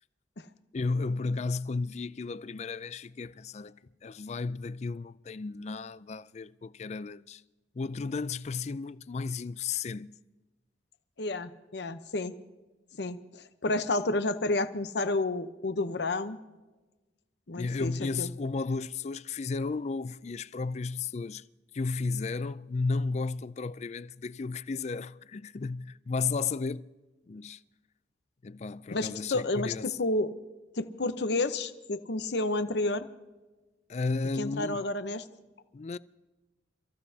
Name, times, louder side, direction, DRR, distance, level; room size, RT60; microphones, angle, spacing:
voice 1, 0.7-7.4 7.7-10.2 17.5-21.5 21.7-26.9 27.3-27.6 28.4-29.9 33.9-34.8 35.7-36.0, left 4 dB, 40° left, 0.4 m, -33 dB
voice 2, 11.2-12.3 13.0-16.4 17.5-18.3 28.9-30.3 30.8-33.1 34.4-35.2, left 2 dB, 65° left, 0.8 m, -30 dB
29.0 x 15.0 x 2.8 m
head